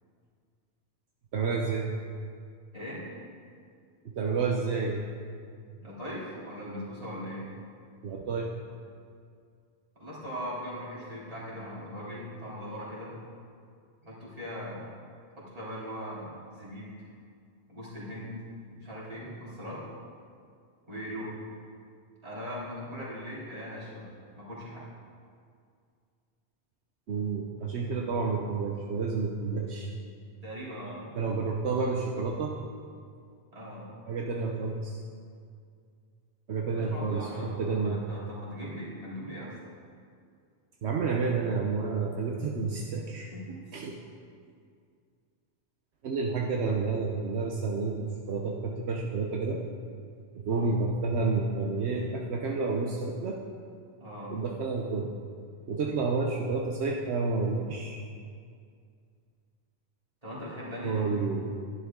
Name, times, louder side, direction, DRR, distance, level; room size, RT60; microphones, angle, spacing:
voice 1, 1.3-1.9 4.0-5.0 8.0-8.5 27.1-29.9 31.2-32.6 34.1-35.0 36.5-38.0 40.8-43.3 43.7-44.0 46.0-49.6 50.3-53.4 54.3-55.1 55.7-58.0 60.8-61.6, right 4 dB, 75° right, 0 dB, 1.1 m, -30 dB
voice 2, 2.7-3.0 5.8-7.5 9.9-13.1 14.0-14.9 15.4-16.9 17.7-18.4 18.7-19.8 20.9-21.3 22.2-24.1 24.4-24.8 30.4-31.1 33.5-33.9 36.7-39.5 43.2-43.6 54.0-54.3 60.2-61.3, equal, 35° right, -9 dB, 3.2 m, -40 dB
11.0 x 11.0 x 3.7 m, 2.2 s
omnidirectional pair, 1.1 m